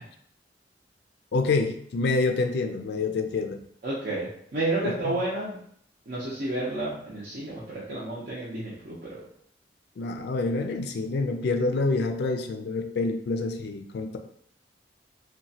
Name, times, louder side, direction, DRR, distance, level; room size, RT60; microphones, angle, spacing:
voice 1, 1.3-3.6 4.8-5.2 10.0-14.2, left 3 dB, 65° left, 6 dB, 0.3 m, -27 dB
voice 2, 3.8-5.6 6.1-9.2, right 2 dB, 55° right, -8 dB, 0.6 m, -31 dB
2.9 x 2.2 x 2.7 m, 0.67 s
head